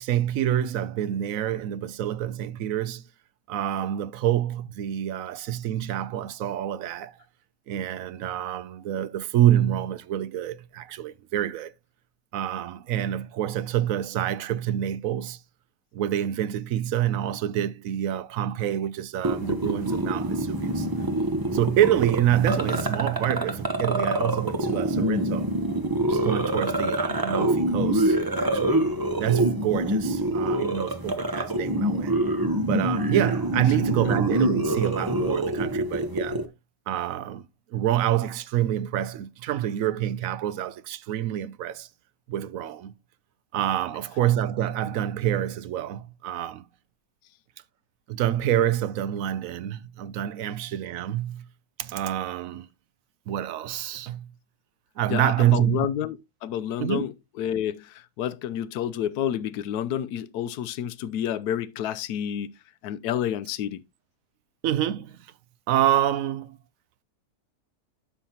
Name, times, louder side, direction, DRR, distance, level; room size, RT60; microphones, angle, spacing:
voice 1, 0.0-3.0 3.5-7.2 7.7-11.7 12.3-15.4 15.9-20.9 21.5-25.5 26.0-28.8 29.2-32.1 32.6-36.5 36.9-41.9 42.3-42.9 43.5-46.6 48.1-51.5 51.8-52.7 53.3-54.3 55.0-55.9 56.8-57.1 64.6-65.2 65.7-66.6, right 11 dB, 70° right, 0.9 m, -27 dB
sound 1, 19.2-36.4, right 1 dB, 20° right, 0.6 m, -26 dB
voice 2, 55.1-62.5 62.8-63.8, left 10 dB, 85° left, 1.2 m, -29 dB
11.5 x 5.8 x 2.8 m
omnidirectional pair, 1.6 m